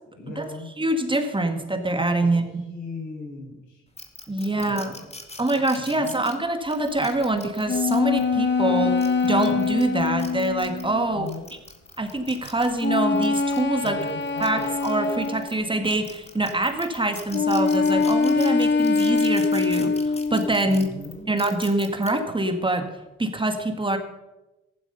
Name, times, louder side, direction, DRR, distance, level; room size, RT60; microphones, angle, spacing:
voice 1, 0.1-0.7 2.2-3.8 4.5-5.1 5.8-6.3 11.1-11.5 13.8-14.7 20.6-21.3, left 3 dB, 80° left, -1 dB, 6.1 m, -39 dB
voice 2, 0.8-2.4 4.3-4.9 5.4-9.0 9.2-11.3 12.0-14.0 14.4-20.9 21.3-22.9 23.2-24.0, right 2 dB, 15° right, 6 dB, 1.7 m, -25 dB
sound 1, 4.0-8.2 8.8-10.9 11.3-15.5 15.8-22.1, left 3 dB, 20° left, 2.1 m, -42 dB
sound 2, 7.7-11.2 12.8-15.7 17.3-20.6, left 4 dB, 35° left, 1.1 m, -23 dB
14.5 x 12.0 x 5.5 m, 1.0 s
cardioid pair, 90°, 30 cm